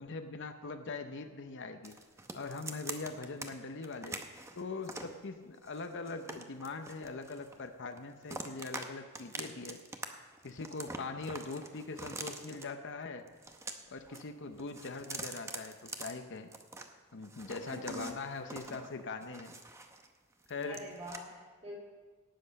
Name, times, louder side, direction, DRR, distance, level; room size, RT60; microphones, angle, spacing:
voice 1, 0.0-2.0 2.3-4.2 4.6-9.8 10.4-13.3 13.9-16.5 17.1-19.5 20.5-20.9, left 3 dB, 55° left, 7 dB, 0.7 m, -42 dB
sound 1, 1.8-3.5 3.8-5.2 5.7-7.7 8.0-8.9 9.1-10.1 10.3-12.6 13.3-14.2 14.5-16.9 17.2-20.1 20.4-21.2, right 3 dB, 15° right, 0.8 m, -44 dB
voice 2, 17.7-18.2 20.6-21.8, equal, 30° right, -2 dB, 3.5 m, -45 dB
18.0 x 7.9 x 5.3 m, 1.4 s
head